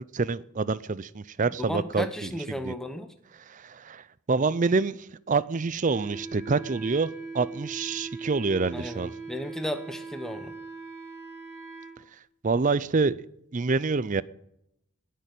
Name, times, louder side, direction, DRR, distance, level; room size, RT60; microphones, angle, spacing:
voice 1, 0.1-2.7 3.5-5.0 5.3-9.1 12.4-13.2 13.5-14.2, right 4 dB, 35° right, 19 dB, 0.5 m, -27 dB
voice 2, 1.6-3.1 8.7-10.5, equal, ahead, 9 dB, 0.8 m, -34 dB
Wind instrument woodwind instrument, 5.8-12.0, right 4 dB, 15° right, 3.0 m, -40 dB
18.0 x 6.7 x 9.2 m, 0.80 s
head